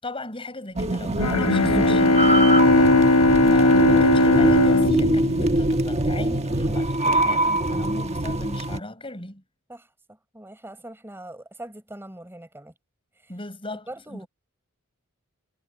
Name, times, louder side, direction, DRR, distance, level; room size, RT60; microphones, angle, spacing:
voice 1, 0.0-2.9 3.4-9.4 13.3-14.3, left 2 dB, 25° left, 6.3 m, -37 dB
sound 1, 0.8-8.8, right 1 dB, 30° right, 1.3 m, -24 dB
Bowed string instrument, 1.2-6.1, left 2 dB, 80° left, 1.3 m, -18 dB
voice 2, 9.7-12.7 13.2-13.3 13.9-14.3, right 1 dB, 10° right, 4.5 m, -42 dB
head